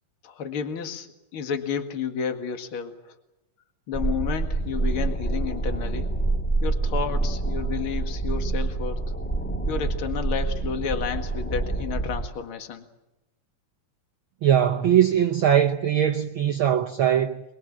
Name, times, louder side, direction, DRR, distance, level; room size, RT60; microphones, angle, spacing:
voice 1, 0.2-3.1 3.9-6.1 6.6-9.0 9.6-12.9, left 7 dB, 45° left, 2.5 m, -31 dB
sound 1, 3.9-12.3, right 2 dB, 5° left, 0.9 m, -27 dB
voice 2, 14.4-17.4, right 9 dB, 70° right, 1.2 m, -21 dB
24.5 x 22.5 x 7.4 m
omnidirectional pair, 3.5 m